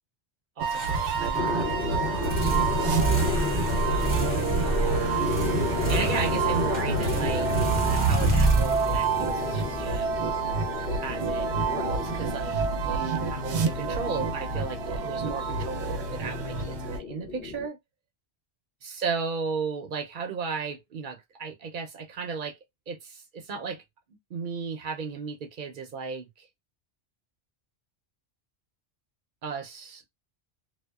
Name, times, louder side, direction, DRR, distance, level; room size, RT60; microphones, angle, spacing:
voice 1, 0.6-2.9 4.6-5.2 5.9-7.5 7.9-10.1 11.0-17.8 18.8-22.6 22.9-23.8 24.3-26.5 29.4-30.0, right 5 dB, 60° right, 0.6 m, -35 dB
sound 1, 0.6-17.0, right 5 dB, 80° right, 0.9 m, -29 dB
sound 2, 0.7-10.5, right 2 dB, 25° left, 1.4 m, -28 dB
sound 3, 1.3-17.7, left 5 dB, 65° left, 0.9 m, -34 dB
2.7 x 2.0 x 2.2 m
omnidirectional pair, 1.1 m